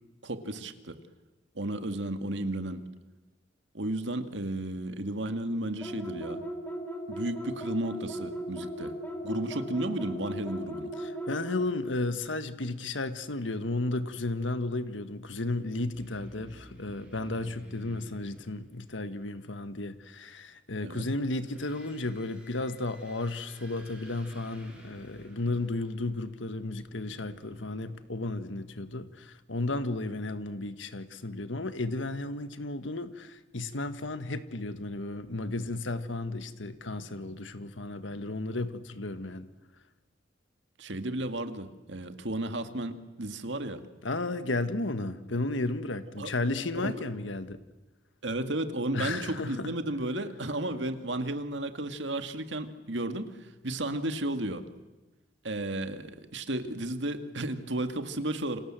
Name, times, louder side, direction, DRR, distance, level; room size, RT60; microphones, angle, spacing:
voice 1, 0.2-1.0 1.6-2.8 3.7-6.4 7.1-9.0 9.2-10.9 20.8-21.0 40.8-42.9 43.2-43.8 46.2-46.3 46.8-47.1 48.2-53.3 53.6-54.6 55.4-58.6, right 1 dB, 65° right, 8 dB, 2.1 m, -33 dB
sound 1, 5.8-11.7, equal, 10° left, 4.2 m, -37 dB
voice 2, 11.0-39.5 44.0-47.6 48.9-49.7, left 2 dB, 80° left, 11 dB, 1.6 m, -33 dB
sound 2, 15.9-19.2 21.2-28.5, equal, 5° right, 7.7 m, -54 dB
29.0 x 27.0 x 7.7 m, 1.1 s
head